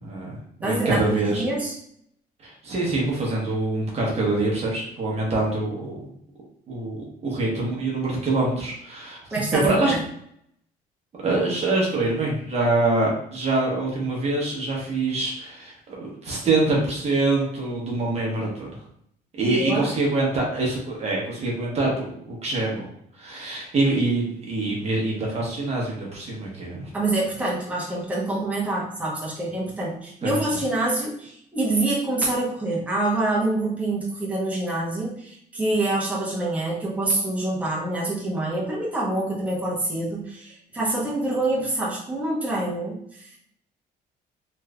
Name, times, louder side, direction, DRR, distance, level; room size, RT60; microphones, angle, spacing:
voice 1, 0.0-1.4 2.4-6.0 6.7-9.2 9.5-9.9 11.2-18.8 19.3-22.9 23.2-26.9 30.2-30.4, right 2 dB, 40° right, -3 dB, 1.1 m, -25 dB
voice 2, 0.6-1.7 9.3-10.0 19.4-19.9 26.9-43.4, right 2 dB, 10° right, -6 dB, 1.0 m, -26 dB
3.1 x 3.1 x 2.4 m, 0.70 s
cardioid pair, 110°, 17 cm